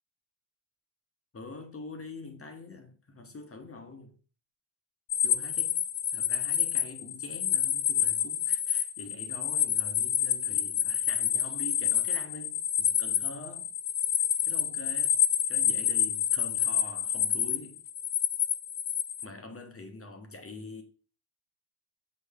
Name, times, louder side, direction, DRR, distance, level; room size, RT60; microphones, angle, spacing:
voice 1, 1.3-4.1 5.2-5.8 6.1-13.7 14.4-15.2 15.5-17.8 19.2-20.8, left 3 dB, 25° left, 1.1 m, -45 dB
sound 1, 5.1-19.2, left 9 dB, 45° left, 0.5 m, -28 dB
6.6 x 4.4 x 3.6 m
cardioid pair, 100°, 50 cm